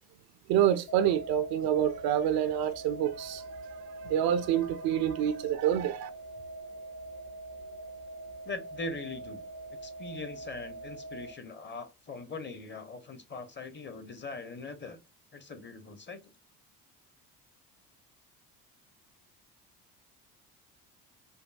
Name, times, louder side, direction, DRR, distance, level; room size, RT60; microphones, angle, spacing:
voice 1, 0.5-3.5 4.0-6.1, right 10 dB, 55° right, 0.5 m, -27 dB
sound 1, 0.9-11.3, right 2 dB, 55° left, 1.8 m, -43 dB
voice 2, 8.4-9.4 9.8-15.0 15.3-16.2, left 3 dB, 25° left, 0.8 m, -41 dB
5.2 x 2.2 x 2.3 m
hypercardioid pair, 60°, 46 cm